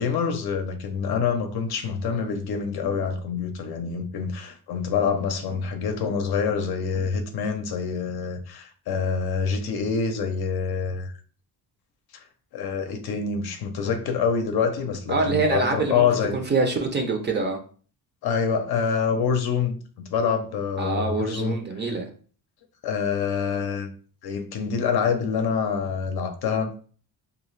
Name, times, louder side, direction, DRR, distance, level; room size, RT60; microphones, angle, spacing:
voice 1, 0.0-11.1 12.5-16.4 18.2-19.8 20.1-21.6 22.8-23.9 24.2-26.7, left 6 dB, 65° left, 0.6 m, -26 dB
voice 2, 15.1-16.1 16.3-17.6 20.8-22.1, right 3 dB, 25° right, 0.5 m, -25 dB
2.5 x 2.3 x 3.1 m
cardioid pair, 105°, 41 cm